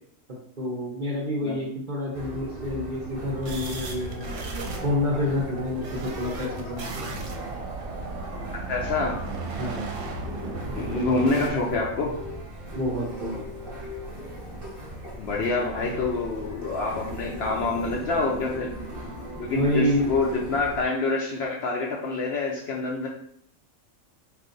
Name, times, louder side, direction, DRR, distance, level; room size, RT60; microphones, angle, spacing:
voice 1, 0.3-7.1 9.6-10.0 12.7-13.4 19.5-20.0, left 1 dB, 50° right, -4 dB, 0.6 m, -28 dB
sound 1, 2.1-20.9, equal, 20° right, 0.8 m, -38 dB
sound 2, 3.4-11.5, right 3 dB, 70° right, 0.9 m, -36 dB
voice 2, 8.7-9.2 10.7-12.1 15.2-18.7 19.4-23.1, left 3 dB, 65° left, -2 dB, 0.7 m, -26 dB
2.7 x 2.4 x 3.8 m, 0.67 s
omnidirectional pair, 1.4 m